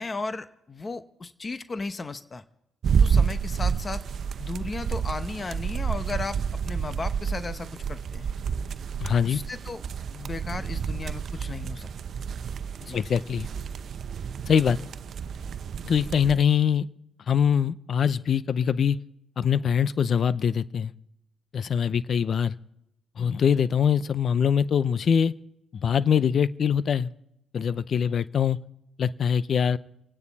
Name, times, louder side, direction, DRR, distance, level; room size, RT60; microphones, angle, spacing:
voice 1, 0.0-2.4 3.0-4.0 4.4-6.4 6.6-8.3 9.2-9.8 10.1-11.9 12.8-13.0, left 3 dB, 30° left, 11 dB, 0.9 m, -35 dB
sound 1, 2.8-16.4, right 6 dB, 60° right, 0.7 m, -29 dB
voice 2, 9.0-9.4 12.9-13.5 14.5-14.8 15.8-16.9 17.3-19.0 19.4-20.9 21.5-22.6 23.2-25.3 25.7-27.1 27.5-28.6 29.0-29.8, left 7 dB, 55° left, 16 dB, 0.7 m, -23 dB
27.5 x 9.7 x 4.1 m, 0.82 s
cardioid pair, 90°, 0 cm